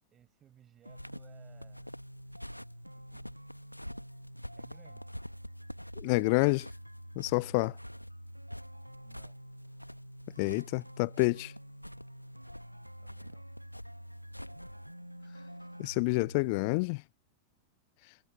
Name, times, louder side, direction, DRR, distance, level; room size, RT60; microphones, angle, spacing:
voice 1, 0.1-2.0 2.9-3.4 4.5-5.1 6.1-6.7 7.5-7.6 9.0-9.4 13.0-13.5, right 10 dB, 25° right, 7.5 m, -61 dB
sound 1, 0.9-14.9, equal, 90° left, 1.5 m, -48 dB
sound 2, 0.9-16.9, equal, 90° right, 1.4 m, -48 dB
voice 2, 6.0-6.6 7.2-7.7 10.4-11.5 15.8-17.0, left 31 dB, 45° left, 0.4 m, -28 dB
figure-of-eight pair, 90°, 0 cm